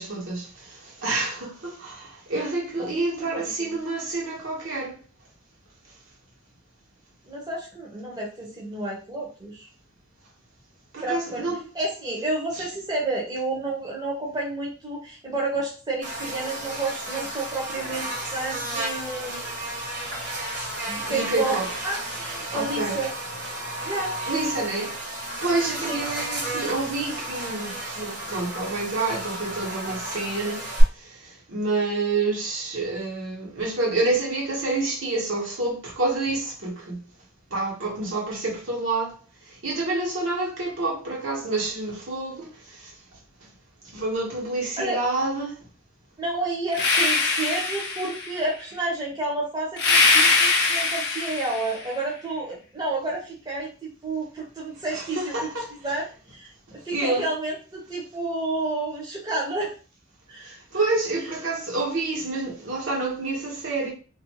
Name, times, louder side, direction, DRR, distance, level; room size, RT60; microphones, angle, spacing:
voice 1, 0.0-5.0 10.9-11.6 21.0-21.7 22.5-23.0 24.3-25.0 25.4-30.7 30.9-37.0 37.5-39.2 39.5-42.9 43.9-45.6 54.9-55.7 56.9-57.2 60.4-63.9, right 2 dB, 80° right, 1.0 m, -28 dB
voice 2, 2.8-3.8 7.2-9.7 11.0-19.5 20.9-21.6 21.8-23.1 23.8-24.2 25.8-26.0 44.8-45.0 46.2-55.5 55.8-59.7 60.3-60.6, right 2 dB, 20° right, 0.6 m, -30 dB
Buzz, 16.0-30.8, right 1 dB, 55° right, 0.9 m, -32 dB
sound 1, 46.7-48.4 49.8-51.8, left 3 dB, 55° left, 0.6 m, -22 dB
2.5 x 2.1 x 2.8 m
head